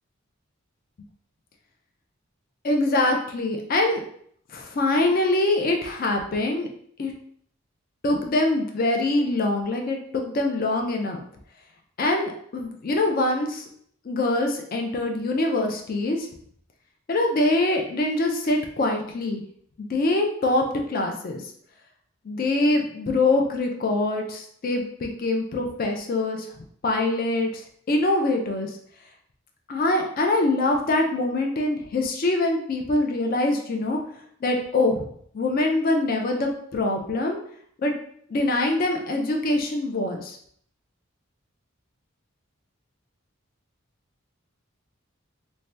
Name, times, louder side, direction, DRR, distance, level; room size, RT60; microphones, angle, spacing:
voice 1, 2.6-4.0 4.5-6.7 7.0-7.1 8.0-11.2 12.0-13.6 14.0-16.3 17.1-19.4 19.8-21.4 22.2-26.5 26.8-27.6 27.9-28.7 29.7-34.0 34.4-35.1 35.3-37.4 37.8-37.9 38.3-40.4, left 2 dB, 45° left, 2 dB, 0.4 m, -24 dB
2.7 x 2.1 x 3.2 m, 0.64 s
head